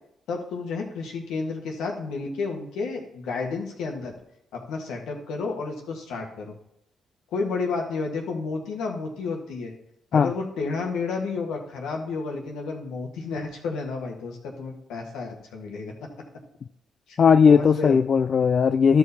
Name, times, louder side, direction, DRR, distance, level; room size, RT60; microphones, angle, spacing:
voice 1, 0.3-4.1 4.5-6.5 7.3-9.7 10.1-16.1 17.1-17.2 17.4-18.0, left 4 dB, 80° left, 1 dB, 1.6 m, -31 dB
voice 2, 17.2-19.0, left 6 dB, 55° left, 11 dB, 0.3 m, -17 dB
13.0 x 4.8 x 4.2 m, 0.77 s
hypercardioid pair, 50°, 0 cm